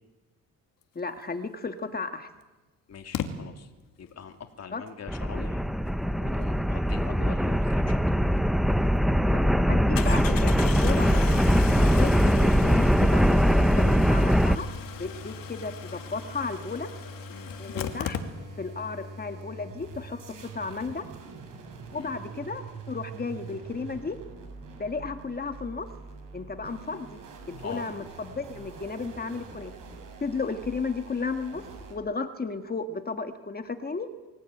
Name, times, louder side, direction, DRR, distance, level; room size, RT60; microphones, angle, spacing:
voice 1, 1.0-2.3 4.7-4.8 9.3-11.1 11.7-14.7 15.0-16.9 17.6-18.2 18.6-21.1 21.9-24.2 24.8-25.9 26.3-27.2 27.5-29.7 30.2-34.1, left 4 dB, 25° left, 7 dB, 1.9 m, -34 dB
Engine starting, 1.6-1.7 3.1-3.3 8.3-8.4 8.8-8.9 10.0-18.8 19.0-19.1 19.3-19.4, left 9 dB, 70° left, 2.4 m, -38 dB
voice 2, 2.9-3.7 4.0-5.6 6.2-8.2 17.3-17.5 21.9-22.1 27.6-27.8, left 6 dB, 45° left, 5 dB, 2.8 m, -43 dB
sound 1, 5.1-14.6, equal, ahead, 0.8 m, -22 dB
sound 2, 13.9-31.9, right 2 dB, 60° right, 7.3 m, -44 dB
25.5 x 16.5 x 9.4 m, 1.2 s
cardioid pair, 100°, 35 cm